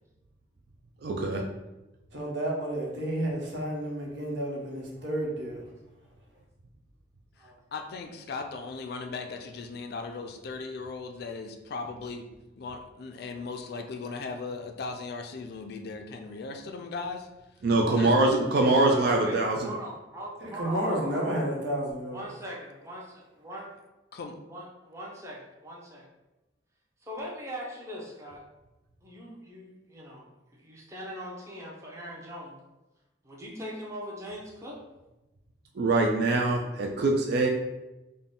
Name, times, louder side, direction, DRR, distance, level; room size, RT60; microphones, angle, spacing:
voice 1, 1.0-1.4 17.6-19.7 35.8-37.5, right 2 dB, 60° right, 1 dB, 0.4 m, -23 dB
voice 2, 2.1-5.6 20.4-22.3, right 1 dB, 80° right, -2 dB, 1.0 m, -31 dB
voice 3, 7.4-12.3 12.6-17.3 17.9-18.1 24.1-24.4, left 4 dB, 60° left, 6 dB, 0.4 m, -38 dB
voice 4, 18.6-21.3 22.1-23.7 24.5-26.1 27.0-28.4 29.0-30.3 30.5-32.6 33.2-34.8, equal, 15° right, -3 dB, 0.7 m, -41 dB
3.8 x 2.2 x 3.7 m, 1.0 s
head